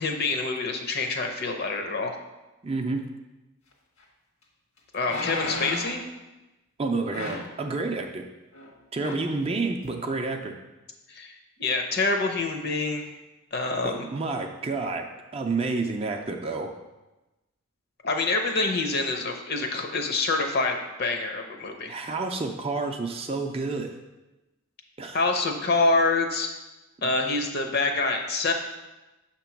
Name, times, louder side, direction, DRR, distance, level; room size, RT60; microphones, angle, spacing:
voice 1, 0.0-2.2 4.9-6.0 11.1-13.1 13.5-14.1 18.0-21.9 25.1-26.5 27.0-28.5, left 3 dB, 50° left, 4 dB, 0.7 m, -26 dB
voice 2, 2.6-3.1 6.8-8.3 8.9-10.5 13.8-15.1 15.3-16.7 21.9-24.0 25.0-25.2, right 3 dB, 30° right, 4 dB, 0.4 m, -29 dB
sound 1, 4.0-4.1 5.0-6.0 7.1-7.6 8.5-8.7 9.0-9.3 9.8-9.9, left 2 dB, 85° left, 1.4 m, -34 dB
6.8 x 3.0 x 5.8 m, 1.1 s
head